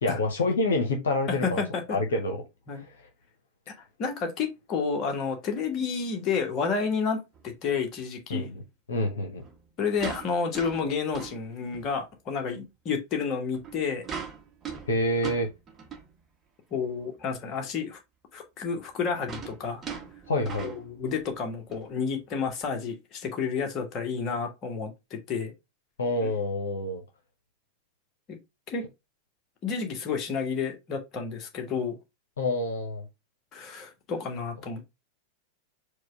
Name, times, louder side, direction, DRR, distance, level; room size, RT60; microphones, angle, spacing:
voice 1, 0.0-1.6 1.9-2.4 2.8-3.1 8.3-8.6 8.9-9.4 14.9-15.5 20.3-20.7 26.0-27.0 32.4-33.1, left 2 dB, 65° left, 1.0 m, -27 dB
voice 2, 1.4-2.0 2.7-2.8 3.7-3.8 4.0-8.5 9.8-14.0 16.7-18.0 18.3-19.8 20.6-25.5 28.3-28.4 28.7-28.9 29.6-32.0 33.5-34.8, left 5 dB, 35° left, 1.3 m, -30 dB
sound 1, 7.3-7.5 9.4-12.0 12.5-12.6 13.4-16.2 16.9-17.0 17.2-17.3 18.6-21.3 21.7-21.9 22.5-22.6, right 6 dB, 20° right, 1.0 m, -41 dB
4.7 x 2.3 x 4.6 m
figure-of-eight pair, 90°, 0 cm